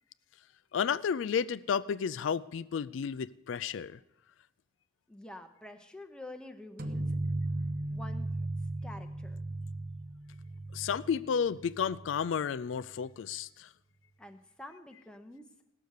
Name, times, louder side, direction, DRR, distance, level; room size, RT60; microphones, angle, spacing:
voice 1, 0.7-4.0 10.7-13.7, left 7 dB, 80° left, 0.4 m, -32 dB
voice 2, 5.1-7.2 7.9-8.3 8.8-9.4 14.2-15.6, left 1 dB, 5° left, 0.8 m, -48 dB
sound 1, 6.8-12.3, right 2 dB, 45° right, 0.9 m, -36 dB
17.0 x 6.8 x 6.5 m
head